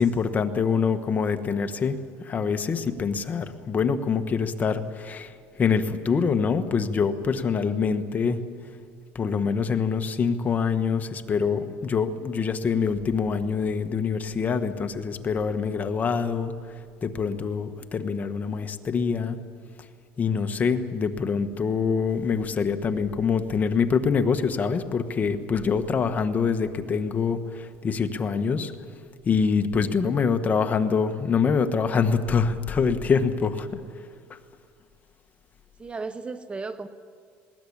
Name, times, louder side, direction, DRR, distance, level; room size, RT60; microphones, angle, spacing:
voice 1, 0.0-8.4 9.1-16.5 17.0-19.4 20.2-28.7 29.2-33.8 34.3-34.4, left 5 dB, 30° left, 8 dB, 1.4 m, -25 dB
voice 2, 35.8-36.9, right 4 dB, 20° right, 12 dB, 0.7 m, -36 dB
20.0 x 19.0 x 8.7 m, 2.1 s
cardioid pair, 120°, 6 cm